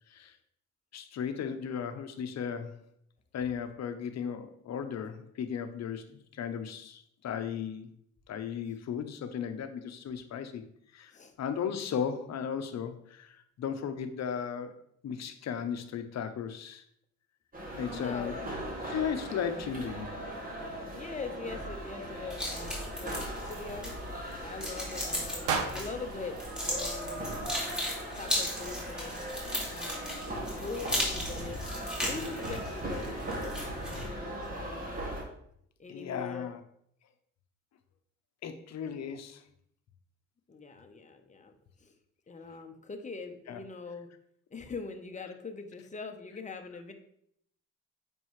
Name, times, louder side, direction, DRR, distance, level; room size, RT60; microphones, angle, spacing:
voice 1, 0.9-2.8 3.3-7.9 8.3-10.6 10.9-11.1 11.4-14.8 15.0-16.8 17.8-18.3 18.9-20.2 35.9-36.6 38.4-39.4 43.5-43.6, left 7 dB, 60° left, 9 dB, 0.9 m, -36 dB
sound 1, 17.5-35.2, right 1 dB, 30° right, 2.2 m, -39 dB
voice 2, 17.9-18.5 20.9-27.3 28.1-29.2 29.7-31.6 32.1-35.0 35.8-36.6 40.5-41.5 41.8-41.9 42.3-44.1 44.5-46.9, left 4 dB, 25° left, 5 dB, 1.0 m, -42 dB
sound 2, 22.3-34.1, left 1 dB, 5° right, 2.4 m, -37 dB
sound 3, 25.5-27.6, right 5 dB, 80° right, 1.0 m, -36 dB
7.5 x 5.4 x 3.2 m, 0.69 s
cardioid pair, 90°, 30 cm